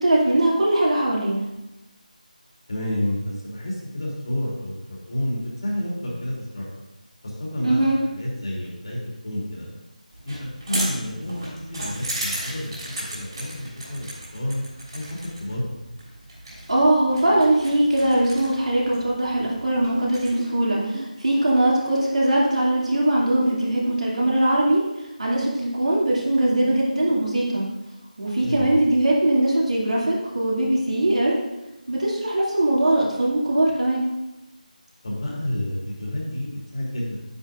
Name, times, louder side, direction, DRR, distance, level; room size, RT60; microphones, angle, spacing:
voice 1, 0.0-1.4 7.6-8.0 16.7-24.8 25.2-27.7 28.2-31.3 31.9-34.0, right 1 dB, 55° right, -4 dB, 2.6 m, -21 dB
voice 2, 2.7-6.7 7.2-9.6 10.2-14.1 14.3-14.6 14.9-15.6 28.4-28.8 35.0-37.2, left 1 dB, 40° left, -4 dB, 3.1 m, -30 dB
sound 1, 10.1-20.3, right 1 dB, 35° right, 3.1 m, -36 dB
sound 2, 19.9-23.9, right 1 dB, 5° right, 2.2 m, -38 dB
9.7 x 9.1 x 2.6 m, 0.96 s
figure-of-eight pair, 165°, 5 cm